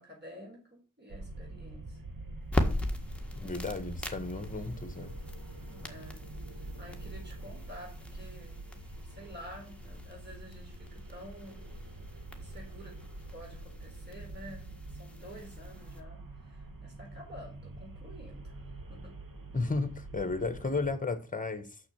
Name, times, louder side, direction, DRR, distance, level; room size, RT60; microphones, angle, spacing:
voice 1, 0.0-2.0 5.7-6.2 6.5-8.6 9.0-11.7 12.3-18.6 18.9-19.2, equal, 30° right, 4.3 m, -50 dB
sound 1, 1.1-20.9, right 2 dB, 75° right, 1.6 m, -46 dB
sound 2, 2.4-16.0, left 1 dB, 5° left, 1.6 m, -40 dB
voice 2, 3.3-5.2 19.5-21.8, left 3 dB, 25° left, 1.4 m, -34 dB
6.6 x 6.4 x 6.9 m
wide cardioid pair, 90°, 34 cm